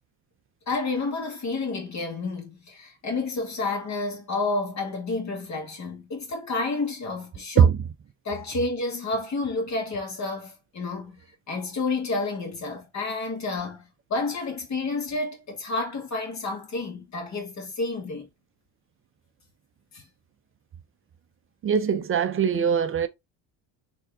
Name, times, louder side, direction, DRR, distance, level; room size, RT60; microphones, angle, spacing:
voice 1, 0.7-7.7 8.2-11.2 11.5-18.3 19.9-20.0, left 3 dB, 40° left, 2.1 m, -30 dB
voice 2, 21.6-23.1, right 7 dB, 30° right, 0.5 m, -21 dB
4.1 x 3.4 x 3.6 m
cardioid pair, 125°, 45 cm